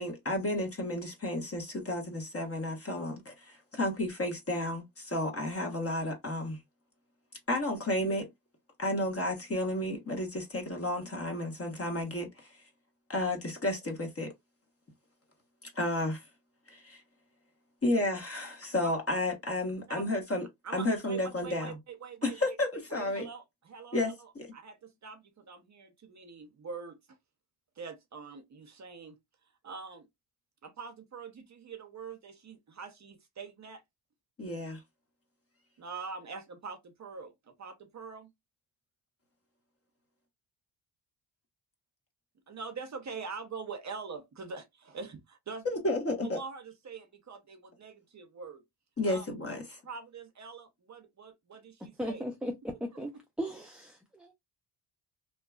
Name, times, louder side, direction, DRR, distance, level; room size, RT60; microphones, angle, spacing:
voice 1, 0.0-6.6 7.5-8.3 8.8-12.5 13.1-14.3 15.6-16.2 16.7-17.0 17.8-20.5 20.7-21.8 22.2-23.3 23.9-24.5 34.4-34.8 45.6-46.4 49.0-49.8, left 1 dB, 30° left, 1.2 m, -32 dB
voice 2, 20.6-22.4 22.9-27.0 27.8-29.2 29.6-30.1 30.6-33.8 35.8-38.3 42.5-45.7 46.2-48.6 49.0-49.3 49.8-52.2, right 5 dB, 35° right, 0.7 m, -44 dB
voice 3, 52.0-53.1 53.4-54.3, equal, ahead, 0.3 m, -37 dB
2.8 x 2.2 x 2.3 m
supercardioid pair, 65°, 47 cm